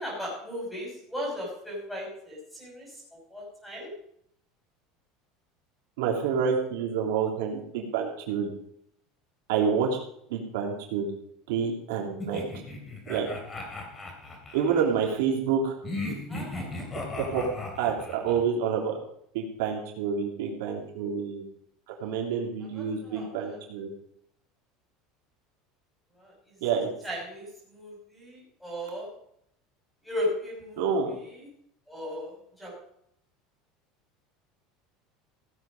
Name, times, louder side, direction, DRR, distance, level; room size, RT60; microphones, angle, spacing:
voice 1, 0.0-2.9 3.3-3.9 16.3-16.7 22.0-22.1 22.7-23.6 26.2-26.3 27.0-29.1 30.0-30.9 31.2-31.5 31.9-32.3 32.6-32.7, left 1 dB, 5° left, -3 dB, 5.9 m, -36 dB
voice 2, 6.0-8.5 9.5-10.0 10.3-11.1 11.5-12.4 13.1-13.3 14.5-15.7 17.2-17.4 17.8-19.0 19.3-21.4 22.0-23.9 26.6-26.9 30.8-31.1, right 6 dB, 85° right, 0 dB, 2.9 m, -28 dB
sound 1, 12.2-14.9 15.8-18.4, left 2 dB, 20° left, 2.9 m, -37 dB
16.0 x 7.9 x 5.2 m, 0.72 s
cardioid pair, 160°, 0 cm